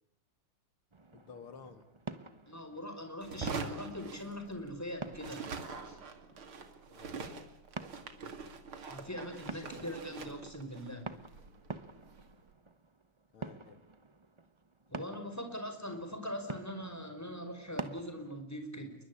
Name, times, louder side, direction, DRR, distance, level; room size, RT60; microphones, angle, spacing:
sound 1, 0.9-18.4, right 3 dB, 20° right, 0.7 m, -48 dB
voice 1, 1.1-1.8 6.9-7.2 9.4-9.9 13.3-13.8, left 5 dB, 75° left, 9 dB, 2.8 m, -52 dB
voice 2, 2.5-5.4 5.8-6.0 8.9-11.1 14.9-19.0, equal, 5° left, 6 dB, 5.1 m, -42 dB
sound 2, 3.2-4.8 5.1-12.3, right 4 dB, 75° right, 3.4 m, -44 dB
28.5 x 23.0 x 8.7 m, 0.71 s
omnidirectional pair, 2.4 m